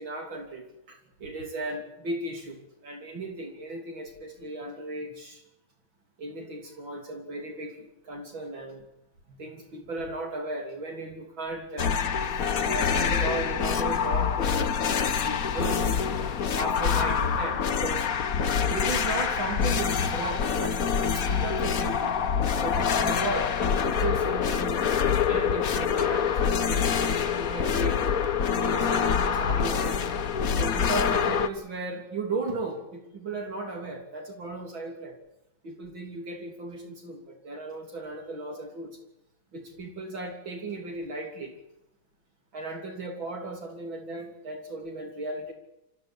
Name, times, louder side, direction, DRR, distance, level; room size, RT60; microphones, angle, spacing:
voice 1, 0.0-5.4 6.2-8.8 9.3-12.0 12.7-16.0 16.6-18.1 18.7-20.8 21.1-22.1 22.6-24.8 25.3-26.9 27.4-28.1 28.7-30.0 30.5-35.2 35.6-38.9 39.5-41.5 42.5-45.5, right 2 dB, 70° right, 3 dB, 3.9 m, -36 dB
sound 1, 11.8-31.5, left 7 dB, 50° left, 1.5 m, -26 dB
26.0 x 15.5 x 8.4 m, 0.89 s
omnidirectional pair, 2.2 m